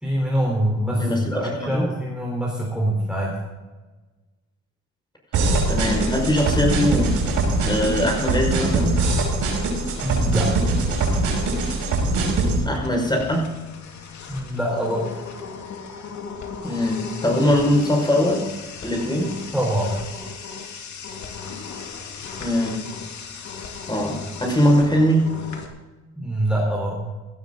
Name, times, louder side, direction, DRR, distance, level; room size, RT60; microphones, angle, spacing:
voice 1, 0.0-3.4 10.0-10.7 14.3-15.1 19.5-20.1 26.2-27.1, right 1 dB, 5° right, -3 dB, 4.1 m, -24 dB
voice 2, 1.0-1.9 5.7-7.2 7.6-9.0 12.6-13.5 16.6-18.5 18.8-19.4 22.4-22.8 23.9-25.3, equal, 15° left, 1 dB, 5.7 m, -21 dB
sound 1, 5.3-12.6, right 2 dB, 80° right, 5.8 m, -22 dB
sound 2, 6.0-25.7, left 5 dB, 70° left, 2.6 m, -38 dB
17.0 x 12.5 x 4.0 m, 1.2 s
cardioid pair, 90°, 30 cm